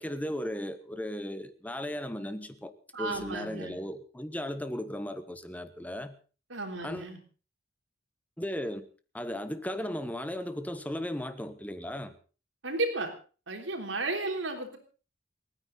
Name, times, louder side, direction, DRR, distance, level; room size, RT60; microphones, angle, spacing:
voice 1, 0.0-6.2 6.8-7.1 8.4-8.8 9.1-12.1, left 1 dB, 10° left, 1.2 m, -36 dB
voice 2, 2.9-3.8 6.5-7.2 12.6-13.1 13.5-14.8, right 2 dB, 80° right, 3.5 m, -33 dB
29.0 x 9.8 x 4.0 m
head